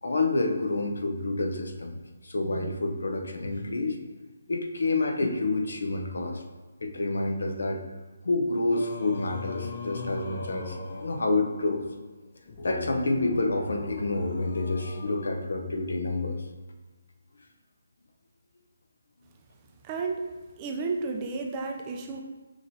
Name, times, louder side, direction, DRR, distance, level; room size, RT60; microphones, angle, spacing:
voice 1, 0.0-2.0 2.2-4.0 4.5-6.4 6.8-7.8 8.2-11.8 12.6-16.4, left 2 dB, 80° left, 4 dB, 0.7 m, -28 dB
Singing, 8.7-16.1, left 3 dB, 35° left, 0.5 m, -40 dB
voice 2, 19.8-20.2 20.6-22.2, right 4 dB, 20° right, 2 dB, 0.4 m, -32 dB
5.8 x 3.0 x 2.7 m, 1.3 s
hypercardioid pair, 170°, 0 cm